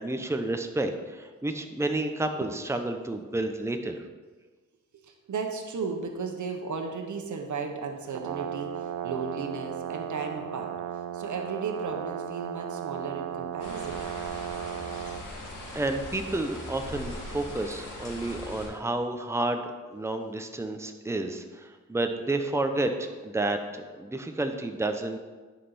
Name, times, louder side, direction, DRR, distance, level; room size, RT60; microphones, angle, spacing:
voice 1, 0.0-4.0 15.7-19.6 19.9-25.2, right 2 dB, 10° right, 6 dB, 0.8 m, -30 dB
voice 2, 4.9-10.8 11.1-14.1, right 5 dB, 70° right, 4 dB, 1.2 m, -35 dB
Brass instrument, 8.1-15.2, right 9 dB, 85° right, 0.6 m, -35 dB
sound 1, 13.6-18.7, left 1 dB, 85° left, 2.4 m, -40 dB
10.5 x 5.6 x 4.2 m, 1.3 s
cardioid pair, 80°, 31 cm